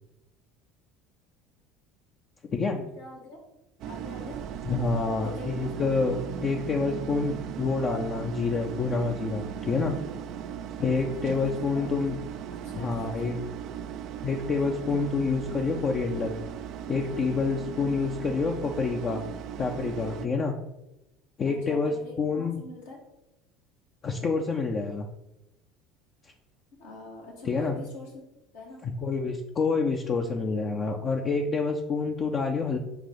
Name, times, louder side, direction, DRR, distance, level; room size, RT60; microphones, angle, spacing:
voice 1, 2.7-3.4 3.9-4.4 5.2-5.5 5.9-6.1 11.0-11.9 12.5-13.3 17.6-18.1 21.4-23.0 26.8-28.2 28.5-28.8, left 2 dB, 80° left, -5 dB, 1.8 m, -44 dB
sound 1, 3.8-20.3, right 9 dB, 55° right, 0.4 m, -37 dB
voice 2, 4.6-6.2 6.4-9.9 10.8-12.2 12.7-13.4 14.2-16.4 16.9-19.2 19.6-20.5 21.4-22.6 24.0-25.1 27.4-27.8 28.8-32.8, left 4 dB, 40° left, 1 dB, 0.7 m, -27 dB
6.9 x 2.7 x 5.5 m, 0.93 s
figure-of-eight pair, 65°, 0 cm